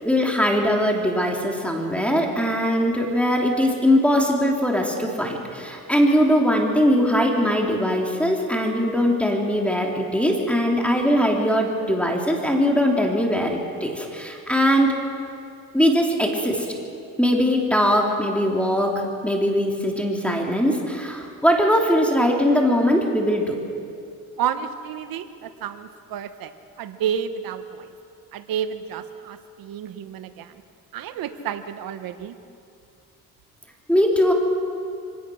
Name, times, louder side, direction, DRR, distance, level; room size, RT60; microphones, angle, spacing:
voice 1, 0.0-15.0 15.7-16.7 17.2-23.6 33.9-34.3, equal, 5° left, 0 dB, 3.2 m, -21 dB
voice 2, 24.4-26.5 26.8-27.9 28.3-30.5 30.9-32.4, right 8 dB, 75° right, 10 dB, 1.2 m, -30 dB
24.5 x 17.5 x 6.4 m, 2.5 s
cardioid pair, 80°, 35 cm